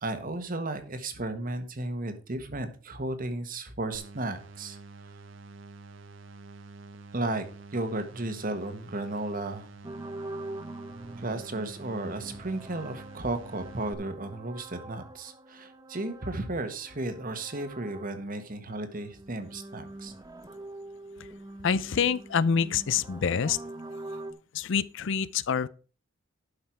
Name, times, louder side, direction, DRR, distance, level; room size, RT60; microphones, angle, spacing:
voice 1, 0.0-4.8 7.1-7.4 7.7-9.7 11.2-20.1, right 2 dB, 45° right, 1.4 m, -34 dB
sound 1, 3.9-13.9, right 3 dB, 65° right, 0.8 m, -48 dB
sound 2, 9.8-18.4 18.7-24.3, right 2 dB, 20° right, 0.9 m, -44 dB
voice 2, 21.6-23.6 24.5-25.7, left 6 dB, 65° left, 0.5 m, -26 dB
11.5 x 5.7 x 4.5 m
head